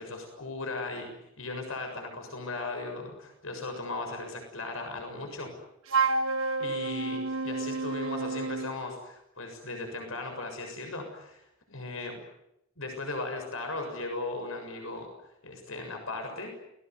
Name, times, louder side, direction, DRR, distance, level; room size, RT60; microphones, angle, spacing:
voice 1, 0.0-5.6 6.6-12.2 12.8-16.5, left 3 dB, 90° left, 4 dB, 7.0 m, -37 dB
Wind instrument woodwind instrument, 5.9-8.8, right 4 dB, 75° right, 1.6 m, -29 dB
30.0 x 20.5 x 9.6 m, 0.83 s
head